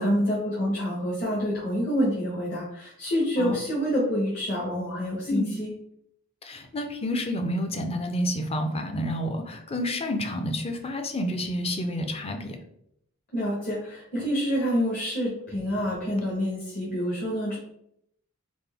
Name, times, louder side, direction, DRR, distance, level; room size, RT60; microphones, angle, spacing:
voice 1, 0.0-5.7 13.3-17.6, equal, 45° left, -5 dB, 1.2 m, -27 dB
voice 2, 6.4-12.6, left 1 dB, 30° left, 5 dB, 0.6 m, -29 dB
4.3 x 3.6 x 3.4 m, 0.74 s
head